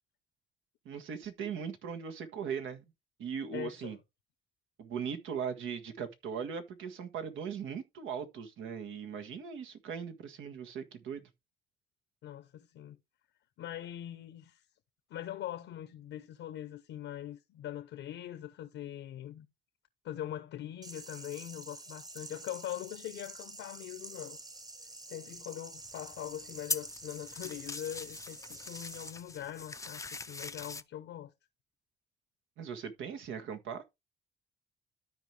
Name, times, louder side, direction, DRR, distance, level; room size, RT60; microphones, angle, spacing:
voice 1, 0.8-2.8 3.2-4.0 4.8-11.2 32.6-33.8, right 7 dB, 80° right, 1.6 m, -39 dB
voice 2, 3.5-4.0 12.2-13.0 13.6-14.6 15.1-19.5 20.0-24.4 25.1-31.3, left 11 dB, 80° left, 1.0 m, -42 dB
sound 1, 20.8-29.1, right 2 dB, 20° right, 1.1 m, -48 dB
sound 2, 25.8-30.8, left 4 dB, 15° left, 0.5 m, -42 dB
13.0 x 4.6 x 3.3 m
cardioid pair, 90°, 20 cm